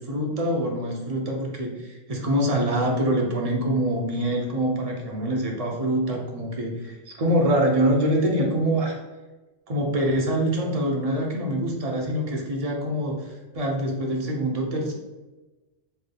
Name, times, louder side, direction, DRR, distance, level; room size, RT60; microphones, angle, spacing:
voice 1, 0.0-9.0 9.7-14.9, right 1 dB, 40° right, -1 dB, 0.6 m, -25 dB
4.1 x 3.3 x 2.2 m, 1.2 s
omnidirectional pair, 1.2 m